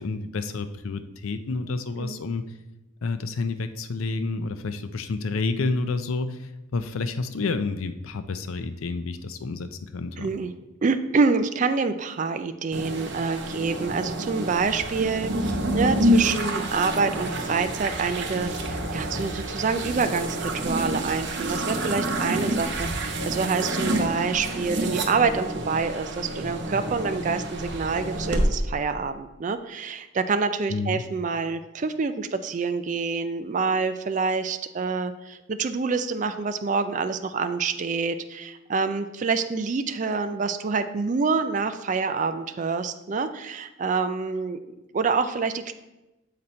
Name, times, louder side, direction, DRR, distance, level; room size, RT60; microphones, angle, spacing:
voice 1, 0.0-2.4 3.0-10.3 30.7-31.0, left 3 dB, 80° left, 10 dB, 0.5 m, -29 dB
voice 2, 10.2-10.5 10.8-44.6 44.9-45.7, right 4 dB, 35° right, 9 dB, 0.3 m, -27 dB
sound 1, 12.7-28.5, right 1 dB, 55° right, 0.8 m, -28 dB
7.5 x 4.1 x 4.3 m, 1.0 s
head